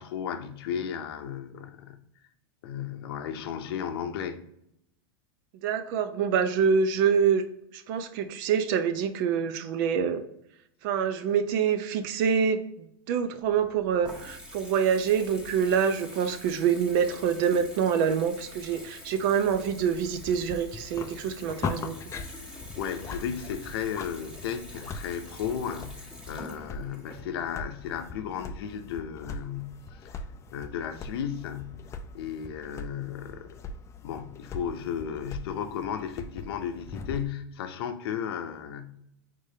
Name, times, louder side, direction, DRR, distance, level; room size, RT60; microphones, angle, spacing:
voice 1, 0.0-2.0 2.6-4.4 22.3-30.2 30.5-31.9 32.1-33.6 34.0-39.0, left 8 dB, 70° left, 0.6 m, -34 dB
voice 2, 5.6-7.4 7.7-10.2 10.8-22.0, right 7 dB, 55° right, 0.6 m, -26 dB
Water tap faucet / Bathtub (filling or washing) / Trickle dribble, 13.4-28.3, equal, 5° right, 1.3 m, -46 dB
sound 1, 19.5-37.3, left 4 dB, 20° left, 0.4 m, -41 dB
4.9 x 3.7 x 2.7 m
hypercardioid pair, 120°, 13 cm